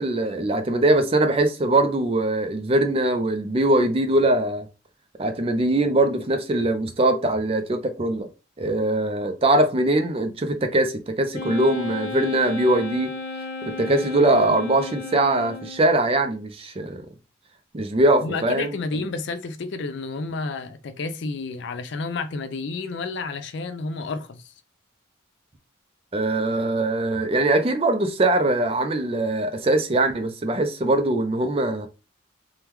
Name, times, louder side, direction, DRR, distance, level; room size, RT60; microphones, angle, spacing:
voice 1, 0.0-4.7 5.2-8.3 8.6-13.1 13.6-17.1 17.7-18.7 26.1-31.9, right 2 dB, 30° right, 0.4 m, -22 dB
Wind instrument woodwind instrument, 11.3-16.0, left 3 dB, 75° left, 1.1 m, -34 dB
voice 2, 18.2-24.5, left 3 dB, 60° left, 0.4 m, -30 dB
3.6 x 2.2 x 3.0 m
head